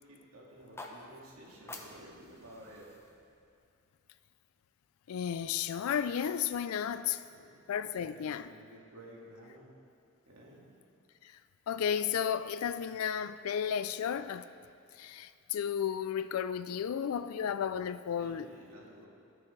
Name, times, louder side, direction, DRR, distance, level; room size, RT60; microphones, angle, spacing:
voice 1, 0.1-2.9 7.2-7.5 7.9-9.7 10.3-10.6 18.2-19.1, right 1 dB, 85° right, 1.9 m, -53 dB
sound 1, 0.5-4.7, left 2 dB, 10° left, 0.6 m, -51 dB
voice 2, 5.1-7.2 7.7-8.5 11.7-14.5 15.0-18.5, left 8 dB, 75° left, 0.3 m, -33 dB
16.5 x 6.1 x 3.2 m
head